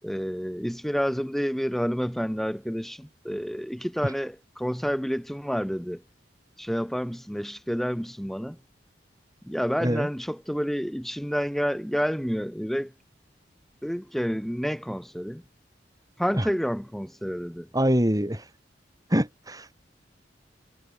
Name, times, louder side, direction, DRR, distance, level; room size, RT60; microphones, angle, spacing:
voice 1, 0.0-6.0 6.6-8.6 9.4-12.9 13.8-15.4 16.2-17.7, equal, ahead, 4.3 m, -29 dB
voice 2, 17.7-18.4 19.1-19.7, equal, 20° right, 5.4 m, -24 dB
head